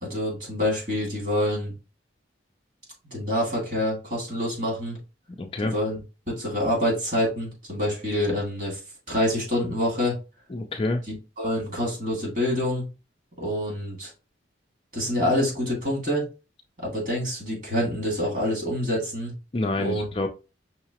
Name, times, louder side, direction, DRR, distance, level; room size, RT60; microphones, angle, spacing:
voice 1, 0.0-1.7 3.1-5.0 5.7-6.0 6.3-8.8 9.1-10.2 11.1-12.9 13.4-14.1 14.9-16.3 16.8-19.3 19.8-20.0, left 1 dB, 40° right, 2.1 m, -26 dB
voice 2, 5.4-5.7 10.5-11.0 19.5-20.3, left 2 dB, 30° left, 0.4 m, -27 dB
5.6 x 2.8 x 2.9 m
head